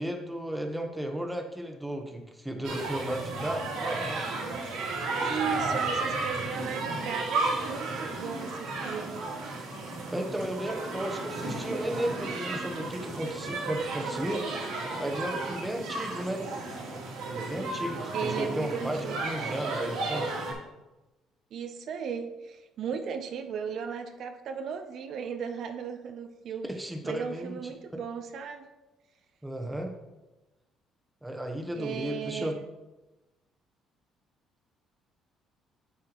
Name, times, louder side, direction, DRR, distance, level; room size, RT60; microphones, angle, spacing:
voice 1, 0.0-4.3 10.1-14.5 15.0-16.4 17.3-20.3 26.6-27.7 29.4-29.9 31.2-32.5, right 1 dB, 5° right, 3 dB, 1.0 m, -34 dB
sound 1, 2.6-20.5, right 3 dB, 85° right, 2.7 m, -33 dB
voice 2, 5.2-9.2 18.1-19.3 21.5-26.7 27.0-28.7 31.7-32.6, right 6 dB, 60° right, 6 dB, 0.6 m, -36 dB
7.7 x 7.5 x 3.0 m, 1.1 s
cardioid pair, 105°, 0 cm